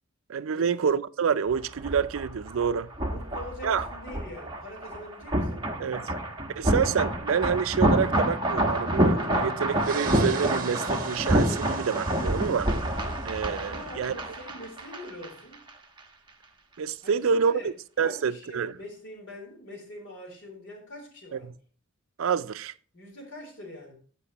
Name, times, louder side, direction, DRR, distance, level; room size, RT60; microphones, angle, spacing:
voice 1, 0.3-2.9 3.6-3.8 5.8-6.1 6.6-12.7 13.2-14.1 16.8-17.6 18.0-18.7 21.3-21.4 22.2-22.7, right 6 dB, 70° right, 0.4 m, -27 dB
sound 1, 1.5-15.3 15.5-15.7, right 1 dB, 20° right, 1.1 m, -28 dB
voice 2, 3.0-6.2 13.6-15.6 17.0-17.7 18.0-21.5 22.9-23.9, left 1 dB, 60° left, 3.6 m, -44 dB
sound 2, 9.8-13.7, right 5 dB, 40° right, 1.2 m, -38 dB
15.5 x 5.3 x 2.9 m
head